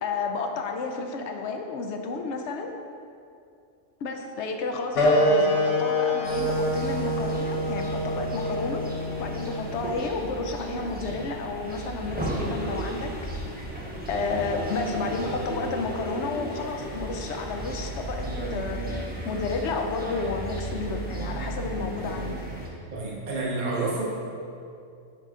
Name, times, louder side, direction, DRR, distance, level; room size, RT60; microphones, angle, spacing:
voice 1, 0.0-2.7 4.0-8.8 9.2-13.1 14.1-18.8 19.2-22.4, left 4 dB, 75° left, 3 dB, 0.9 m, -31 dB
sound 1, 4.9-10.1, left 1 dB, 90° left, 1.2 m, -25 dB
sound 2, 6.2-22.7, right 1 dB, 10° right, 0.7 m, -35 dB
voice 2, 22.9-24.0, right 3 dB, 45° right, -4 dB, 1.0 m, -29 dB
6.7 x 4.6 x 3.7 m, 2.5 s
omnidirectional pair, 1.2 m